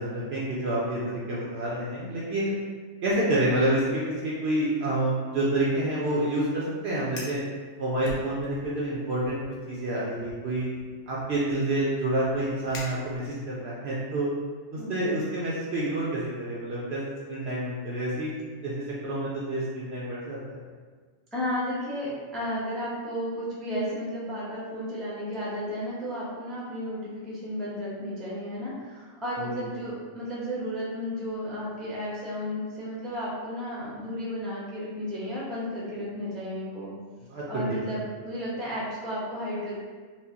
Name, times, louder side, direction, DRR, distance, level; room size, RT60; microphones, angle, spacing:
voice 1, 0.0-2.5 3.0-7.4 7.8-9.4 9.7-10.7 11.1-14.3 14.7-17.0 17.3-18.3 18.6-20.6 29.4-29.6 37.3-37.4 37.7-37.8, right 1 dB, 60° right, -6 dB, 0.7 m, -28 dB
Fire, 7.0-7.5 8.0-8.8 9.2-9.5 10.2-13.6, left 2 dB, 55° left, 0.6 m, -44 dB
voice 2, 14.8-15.2 21.3-36.9 37.5-39.8, equal, ahead, -7 dB, 0.5 m, -33 dB
4.4 x 2.0 x 2.7 m, 1.5 s
omnidirectional pair, 1.5 m